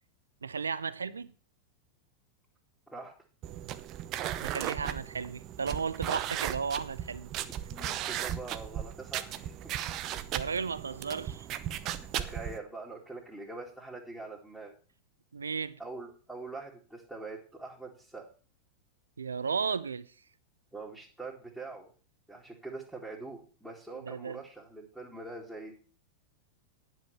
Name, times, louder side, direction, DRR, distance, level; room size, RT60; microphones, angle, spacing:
voice 1, 0.4-1.3 4.4-7.3 10.3-11.5 15.3-15.8 19.2-20.1 23.9-24.4, right 5 dB, 75° right, 0.6 m, -34 dB
sound 1, 3.4-12.6, right 11 dB, 35° right, 0.8 m, -36 dB
voice 2, 7.7-9.5 12.2-14.7 15.8-18.3 20.7-21.9 22.3-25.8, right 3 dB, ahead, 2.5 m, -43 dB
10.5 x 6.4 x 6.8 m
figure-of-eight pair, 90°, 0 cm